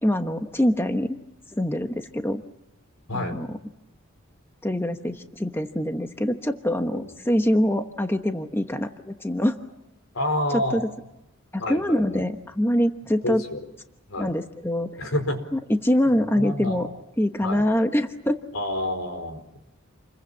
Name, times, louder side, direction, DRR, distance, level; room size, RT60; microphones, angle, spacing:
voice 1, 0.0-1.2 1.5-2.4 3.1-3.6 4.6-9.6 10.7-10.8 11.5-13.4 14.2-15.0 15.5-16.9 17.2-18.4, left 1 dB, 10° left, 6 dB, 1.1 m, -24 dB
voice 2, 3.1-3.4 6.9-7.1 10.1-10.8 11.6-12.2 13.2-13.6 14.1-14.4 15.0-15.4 16.3-16.9 17.4-17.7 18.5-19.6, left 1 dB, 80° left, 7 dB, 4.7 m, -29 dB
28.5 x 22.0 x 7.4 m, 0.90 s
head